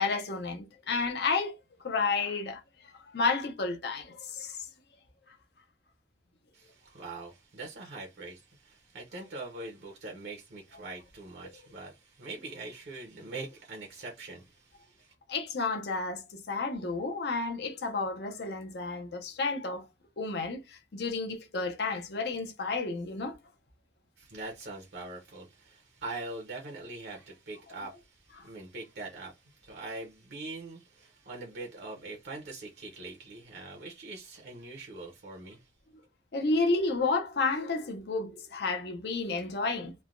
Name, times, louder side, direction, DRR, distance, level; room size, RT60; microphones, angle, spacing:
voice 1, 0.0-1.6 1.8-2.6 2.9-4.6 15.3-19.9 20.2-23.4 36.3-39.9, left 3 dB, 60° left, 0.6 m, -31 dB
voice 2, 6.5-15.1 24.2-35.7, right 2 dB, 60° right, 0.7 m, -43 dB
3.2 x 2.2 x 2.4 m
head